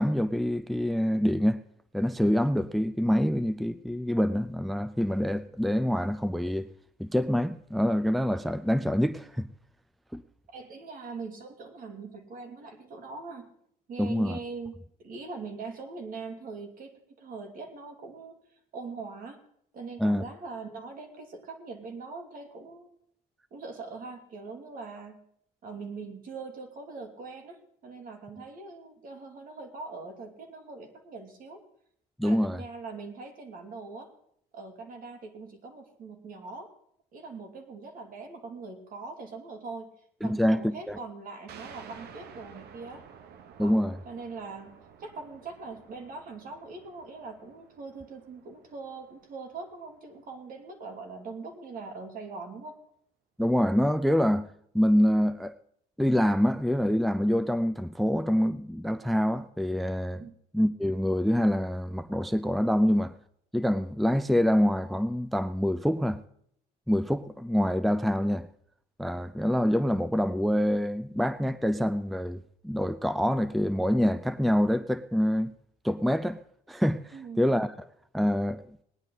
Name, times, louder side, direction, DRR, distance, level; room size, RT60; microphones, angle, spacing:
voice 1, 0.0-1.6 1.9-6.7 7.0-9.5 10.1-10.2 14.0-14.4 20.0-20.2 32.2-32.6 40.2-41.0 43.6-44.0 53.4-54.5 54.7-55.5 56.0-60.3 60.5-63.1 63.5-66.2 66.9-68.5 69.0-75.5 75.8-76.4 76.7-77.7 78.1-78.6, equal, ahead, 0.5 m, -26 dB
voice 2, 10.5-13.5 13.9-18.3 18.7-19.4 19.7-22.9 23.5-25.2 25.6-31.6 32.2-34.1 34.5-36.7 37.1-39.9 40.2-43.0 43.6-43.8 44.0-52.8 60.2-60.4 77.1-77.5, right 4 dB, 55° right, 2.7 m, -42 dB
sound 1, 41.5-50.7, right 7 dB, 70° right, 1.1 m, -52 dB
19.0 x 10.5 x 4.1 m
cardioid pair, 110°, 17 cm